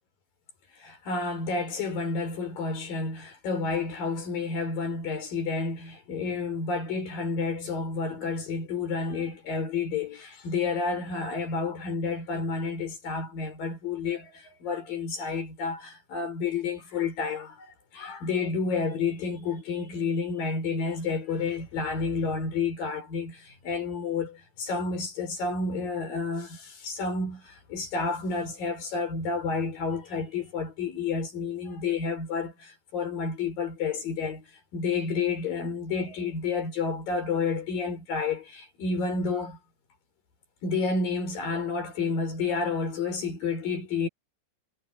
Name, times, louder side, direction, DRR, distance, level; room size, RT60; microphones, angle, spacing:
voice 1, 0.8-17.7 17.9-34.5 34.7-39.6 40.6-44.1, left 4 dB, 50° left, 6.0 m, -30 dB
omnidirectional pair, 5.5 m